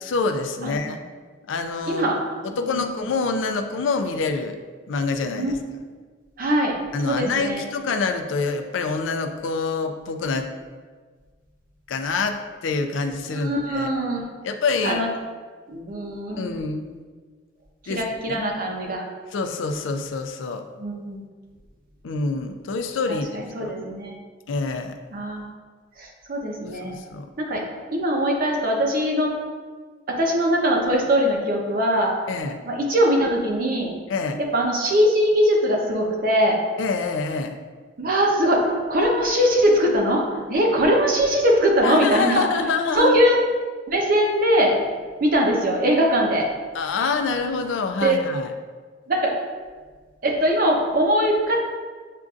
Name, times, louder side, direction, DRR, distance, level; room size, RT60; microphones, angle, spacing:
voice 1, 0.0-1.0 1.5-2.1 2.4-4.6 4.9-5.5 6.9-10.5 11.9-13.9 14.4-15.0 16.4-16.9 17.9-18.4 19.3-20.7 22.0-23.7 24.5-25.0 26.8-27.3 32.3-32.6 34.1-34.4 36.8-37.6 41.8-43.2 46.7-48.5, left 4 dB, 85° left, 7 dB, 0.4 m, -26 dB
voice 2, 1.9-2.4 2.6-2.9 5.4-5.5 6.4-6.7 7.0-7.6 13.3-14.2 14.8-15.1 15.7-16.5 17.8-19.1 20.8-21.2 23.1-24.1 25.1-25.5 26.0-27.0 27.4-27.6 27.9-29.3 30.1-32.1 32.6-33.9 34.4-36.6 38.0-42.5 42.9-43.4 43.9-44.8 45.2-46.5 48.0-48.2 49.1-49.3 50.2-51.5, equal, 50° right, 0 dB, 0.7 m, -21 dB
7.4 x 2.5 x 2.4 m, 1.5 s
head